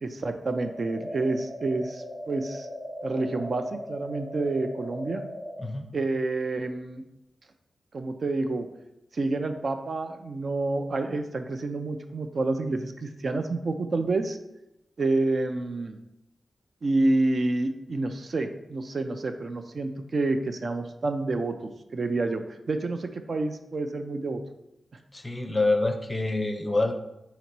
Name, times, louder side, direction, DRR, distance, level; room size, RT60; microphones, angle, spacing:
voice 1, 0.0-2.7 3.0-5.2 5.9-7.0 7.9-8.7 9.1-14.4 15.0-16.0 16.8-24.4, right 2 dB, 55° right, 6 dB, 0.4 m, -28 dB
sound 1, 0.6-5.6, equal, 10° right, 0.8 m, -38 dB
voice 2, 25.1-26.9, left 2 dB, 20° left, 5 dB, 0.5 m, -26 dB
4.1 x 2.9 x 4.6 m, 0.87 s
wide cardioid pair, 100°, 0 cm